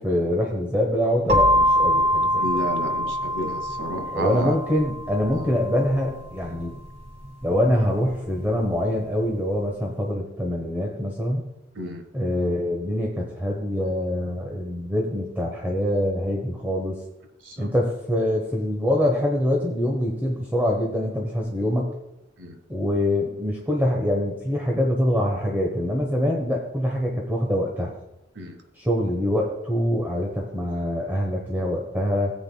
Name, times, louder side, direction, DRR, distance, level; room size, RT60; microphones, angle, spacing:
voice 1, 0.0-2.4 4.1-6.8 7.4-11.4 12.1-17.0 17.6-21.9 22.7-27.9 28.8-32.3, equal, 10° right, -1 dB, 1.1 m, -24 dB
sound 1, 1.3-9.1, equal, 40° right, 1.7 m, -25 dB
voice 2, 2.4-4.6 5.3-5.5 11.8-12.0 17.5-17.7 22.4-22.6 28.4-28.5, right 1 dB, 90° right, 5 dB, 1.7 m, -31 dB
17.0 x 8.2 x 2.3 m, 0.93 s
head